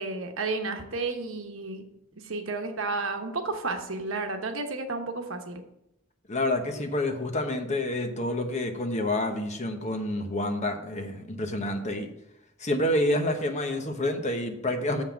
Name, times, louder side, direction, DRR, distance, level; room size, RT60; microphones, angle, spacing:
voice 1, 0.0-1.8 2.2-5.6, right 3 dB, 75° right, 5 dB, 1.1 m, -32 dB
voice 2, 6.3-12.1 12.6-15.0, left 1 dB, 35° left, 5 dB, 1.0 m, -28 dB
6.9 x 5.8 x 7.2 m, 0.82 s
head